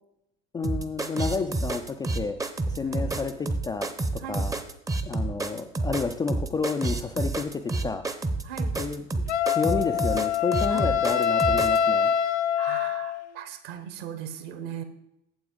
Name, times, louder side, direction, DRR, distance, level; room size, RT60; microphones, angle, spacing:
voice 1, 0.5-2.4 2.7-3.3 3.6-4.5 5.0-8.0 8.8-12.1, left 4 dB, 10° left, 5 dB, 0.4 m, -30 dB
sound 1, 0.6-11.8, right 2 dB, 10° right, 0.7 m, -29 dB
voice 2, 4.2-4.5 8.4-8.8 10.7-11.0 12.5-14.8, right 9 dB, 55° right, 10 dB, 1.2 m, -38 dB
Wind instrument woodwind instrument, 9.3-13.3, left 8 dB, 70° left, 0.6 m, -24 dB
8.8 x 7.6 x 3.8 m, 0.81 s
figure-of-eight pair, 70°, 35 cm